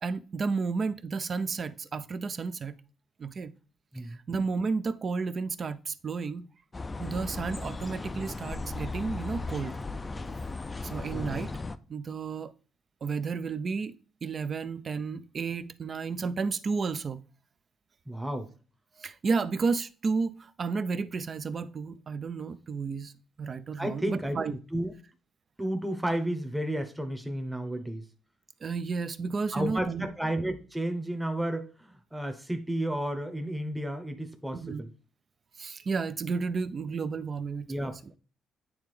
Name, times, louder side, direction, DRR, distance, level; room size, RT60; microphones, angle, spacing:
voice 1, 0.0-2.8 3.2-3.5 4.3-6.5 7.0-9.7 10.8-11.5 11.9-12.5 13.0-13.9 14.2-17.2 19.0-23.1 23.4-24.6 28.6-30.1 34.5-34.8 35.6-38.0, right 4 dB, 45° right, 0.5 m, -32 dB
sound 1, 6.7-11.8, left 3 dB, 25° left, 0.4 m, -36 dB
voice 2, 11.1-11.5 18.1-18.5 23.8-24.9 25.6-28.1 29.5-34.9 37.7-38.2, right 1 dB, 5° right, 0.9 m, -32 dB
8.7 x 3.4 x 3.2 m
cardioid pair, 90°, 0 cm